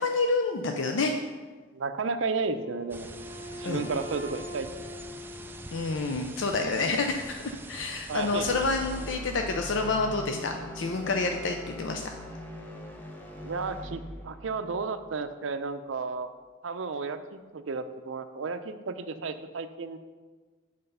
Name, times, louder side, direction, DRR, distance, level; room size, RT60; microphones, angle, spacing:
voice 1, 0.0-1.1 3.6-3.8 5.7-7.4 7.7-12.1, left 3 dB, 70° left, 4 dB, 0.5 m, -28 dB
voice 2, 1.7-3.1 3.5-5.0 8.1-8.5 13.4-16.3 16.6-20.0, right 4 dB, 80° right, 10 dB, 0.5 m, -33 dB
Wind instrument woodwind instrument, 2.4-6.3, left 1 dB, 35° left, 1.0 m, -43 dB
sound 1, 2.9-9.2, right 2 dB, 10° right, 0.3 m, -45 dB
sound 2, 8.1-16.2, left 1 dB, 10° left, 0.8 m, -42 dB
7.8 x 5.0 x 5.5 m, 1.4 s
head